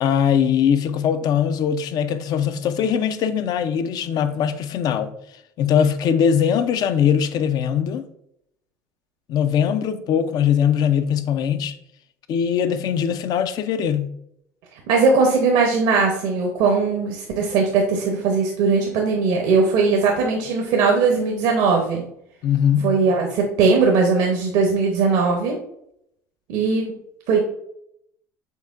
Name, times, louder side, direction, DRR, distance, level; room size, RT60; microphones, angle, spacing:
voice 1, 0.0-5.1 5.6-8.1 9.3-11.7 12.3-14.1 22.4-22.9, left 8 dB, 55° left, 0.4 m, -21 dB
voice 2, 14.9-22.0 22.8-25.5 26.5-26.9 27.3-27.4, right 4 dB, 75° right, 0.7 m, -19 dB
5.5 x 3.6 x 2.4 m
hypercardioid pair, 75°, 8 cm